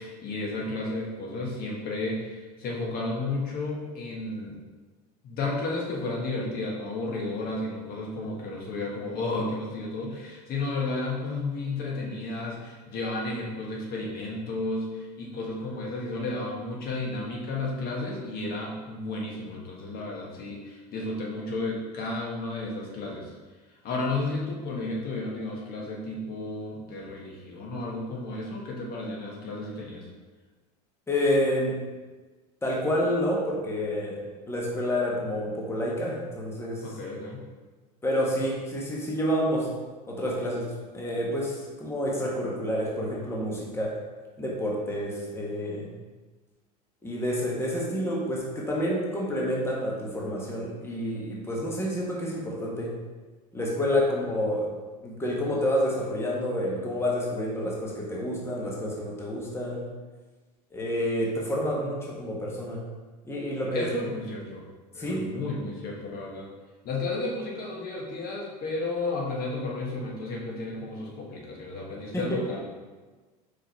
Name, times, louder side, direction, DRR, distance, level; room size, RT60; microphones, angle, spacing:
voice 1, 0.0-4.6 5.2-23.3 23.8-30.1 36.8-37.5 63.7-64.7 64.9-66.5 66.8-72.6, left 2 dB, 50° left, -2 dB, 1.5 m, -33 dB
voice 2, 31.1-31.8 32.6-34.2 34.5-36.9 38.0-39.7 40.1-43.9 44.4-45.9 47.0-52.9 53.5-54.7 55.0-59.8 60.7-62.8 63.2-63.9 65.0-65.3 72.1-72.3, equal, 10° left, -4 dB, 1.4 m, -29 dB
5.0 x 4.5 x 4.5 m, 1.3 s
hypercardioid pair, 100°, 20 cm